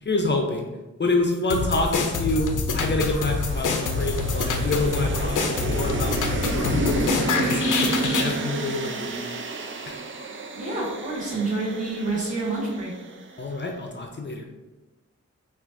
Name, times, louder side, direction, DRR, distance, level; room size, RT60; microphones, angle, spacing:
voice 1, 0.0-0.7 1.0-7.6 8.2-9.4 9.9-10.0 13.4-14.5, left 2 dB, 35° left, 3 dB, 0.5 m, -27 dB
sound 1, 1.5-8.3, left 4 dB, 85° left, 0.5 m, -26 dB
sound 2, 3.1-13.4, right 3 dB, 40° right, 0.4 m, -31 dB
voice 2, 10.5-12.9, right 2 dB, 25° right, -8 dB, 1.4 m, -28 dB
5.6 x 2.4 x 2.6 m, 1.1 s
cardioid pair, 55°, 30 cm